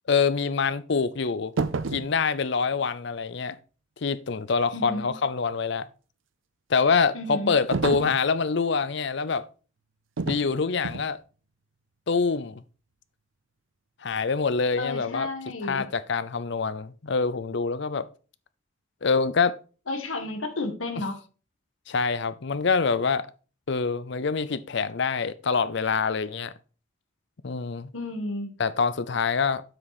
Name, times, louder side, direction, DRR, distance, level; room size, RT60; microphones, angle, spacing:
voice 1, 0.1-1.5 1.9-3.6 4.0-5.9 6.7-9.4 10.3-11.2 12.1-12.6 14.0-15.3 15.6-18.1 19.0-19.6 21.9-23.3 23.7-26.5 27.4-27.9 28.6-29.6, left 5 dB, 60° left, 0.6 m, -25 dB
sound 1, 1.6-2.1 7.7-8.2 10.2-10.5 10.8-11.1, right 4 dB, 75° right, 0.6 m, -29 dB
voice 2, 4.7-5.1 7.1-7.5 14.8-15.8 19.9-21.2 27.9-28.5, left 2 dB, 85° left, 1.6 m, -32 dB
7.7 x 6.3 x 4.1 m
head